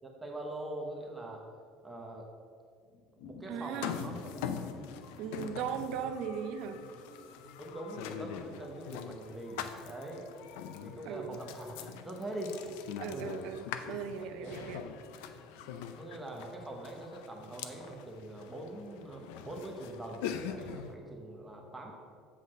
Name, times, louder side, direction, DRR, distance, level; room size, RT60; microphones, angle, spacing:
voice 1, 0.0-1.4 1.8-2.3 3.2-4.7 7.6-10.2 10.8-12.6 13.1-13.3 14.2-14.8 16.0-21.9, right 1 dB, 10° right, 0 dB, 0.9 m, -43 dB
sound 1, 2.8-17.6, left 3 dB, 60° left, 1.0 m, -56 dB
voice 2, 3.5-4.0 5.2-6.8 11.0-11.4 13.0-14.8, right 7 dB, 60° right, 10 dB, 0.5 m, -38 dB
sound 2, 3.7-20.9, left 8 dB, 90° left, 0.5 m, -43 dB
7.6 x 4.1 x 6.4 m, 2.2 s
cardioid pair, 150°, 0 cm